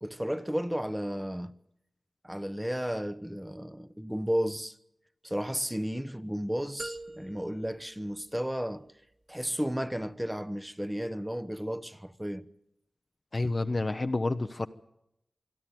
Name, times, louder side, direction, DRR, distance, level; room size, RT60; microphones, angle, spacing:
voice 1, 0.0-1.5 2.2-4.8 5.2-8.9 9.3-12.5, equal, 10° right, 1.0 m, -33 dB
sound 1, 6.8-8.8, right 1 dB, 35° right, 2.2 m, -45 dB
voice 2, 13.3-14.7, left 2 dB, 45° left, 0.8 m, -29 dB
26.0 x 12.0 x 9.3 m
wide cardioid pair, 60°, 0 cm